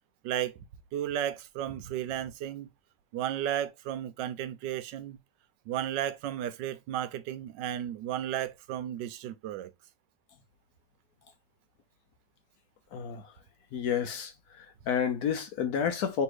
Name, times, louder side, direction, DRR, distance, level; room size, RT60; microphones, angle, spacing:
voice 1, 0.2-0.6 0.9-2.7 3.1-5.2 5.7-9.7, right 11 dB, 80° right, 1.2 m, -34 dB
voice 2, 12.9-13.2 13.7-14.3 14.6-16.2, left 7 dB, 65° left, 1.1 m, -30 dB
3.2 x 2.8 x 4.6 m
omnidirectional pair, 1.9 m